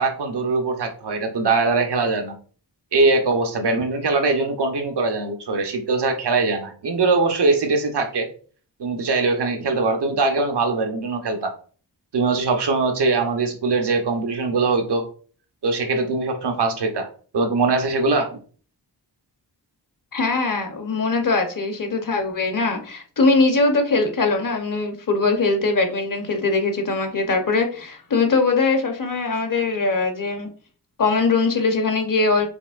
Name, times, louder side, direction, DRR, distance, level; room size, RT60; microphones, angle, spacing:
voice 1, 0.0-2.3 2.9-8.3 8.8-11.5 12.1-15.1 15.6-17.1 17.3-18.4, right 3 dB, 70° right, 4 dB, 0.8 m, -21 dB
voice 2, 20.1-30.5 31.0-32.5, left 3 dB, 50° left, 5 dB, 0.9 m, -21 dB
5.4 x 3.0 x 2.4 m, 0.42 s
wide cardioid pair, 130°, 41 cm